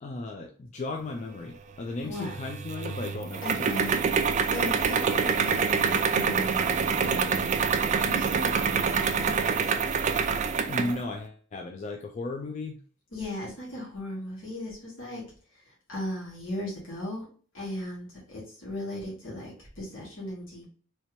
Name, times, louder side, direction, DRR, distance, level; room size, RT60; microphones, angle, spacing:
voice 1, 0.0-3.7 10.7-12.8, left 2 dB, 35° left, 2 dB, 0.4 m, -35 dB
sound 1, 2.2-11.0, right 6 dB, 35° right, 0.3 m, -26 dB
voice 2, 3.4-3.9 4.5-7.5 8.0-9.4 13.1-15.2 15.9-17.3 17.5-20.6, left 1 dB, 70° left, -5 dB, 1.6 m, -37 dB
3.3 x 2.8 x 3.0 m, 0.42 s
head